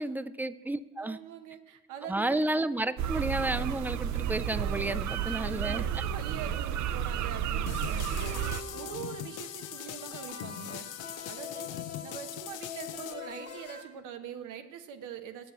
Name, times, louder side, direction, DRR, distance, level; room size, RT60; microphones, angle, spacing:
voice 1, 0.0-1.2 2.1-5.9 8.2-8.3, right 2 dB, 5° right, 15 dB, 0.3 m, -31 dB
voice 2, 1.0-2.5 5.0-8.4 8.7-10.9 11.3-11.7 12.0-15.5, right 9 dB, 90° right, 7 dB, 0.9 m, -43 dB
sound 1, 3.0-8.6, right 9 dB, 70° right, 0.5 m, -32 dB
sound 2, 7.7-13.1, left 13 dB, 85° left, 0.5 m, -41 dB
sound 3, 8.2-13.8, left 4 dB, 55° left, 1.6 m, -44 dB
7.5 x 7.0 x 7.9 m, 1.2 s
cardioid pair, 90°, 30 cm